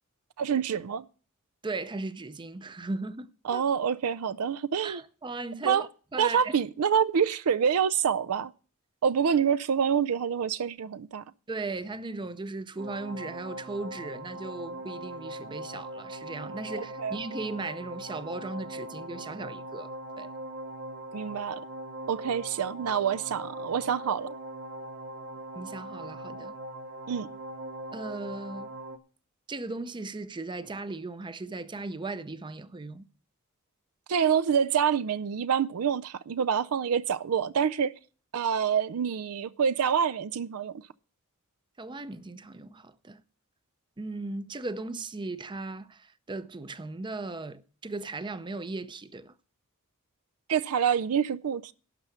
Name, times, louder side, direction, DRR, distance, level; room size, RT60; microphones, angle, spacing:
voice 1, 0.4-1.0 3.5-5.0 5.6-5.8 6.2-8.5 9.0-11.2 17.0-17.2 21.1-21.6 22.1-24.3 27.1-27.3 34.1-37.9 38.3-40.8 50.5-51.7, right 7 dB, 80° right, 0.5 m, -26 dB
voice 2, 1.6-3.6 4.8-6.5 11.5-19.9 20.2-20.3 25.5-26.6 27.9-28.7 29.5-33.1 41.8-43.2 44.0-49.3, right 3 dB, 20° right, 0.5 m, -37 dB
sound 1, 12.8-29.0, right 1 dB, 55° right, 1.0 m, -40 dB
12.0 x 5.6 x 7.9 m
head